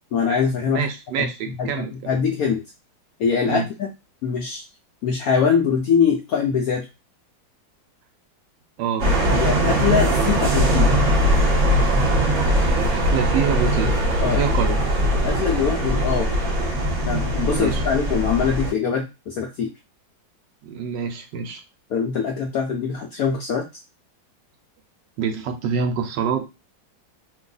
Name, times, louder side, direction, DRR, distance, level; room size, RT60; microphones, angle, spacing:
voice 1, 0.1-0.9 1.2-1.3 1.6-2.6 3.2-3.9 4.2-4.6 5.0-6.9 9.3-10.9 14.2-14.5 15.1-16.3 17.1-19.7 21.9-23.6, left 6 dB, 75° left, 2 dB, 0.8 m, -23 dB
voice 2, 0.7-1.9 3.5-3.7 8.8-9.1 12.9-14.8 17.5-17.8 20.6-21.6 25.2-26.6, right 7 dB, 75° right, 6 dB, 1.2 m, -26 dB
sound 1, 9.0-18.7, equal, 50° right, 1.2 m, -20 dB
3.0 x 2.3 x 3.8 m, 0.26 s
omnidirectional pair, 2.1 m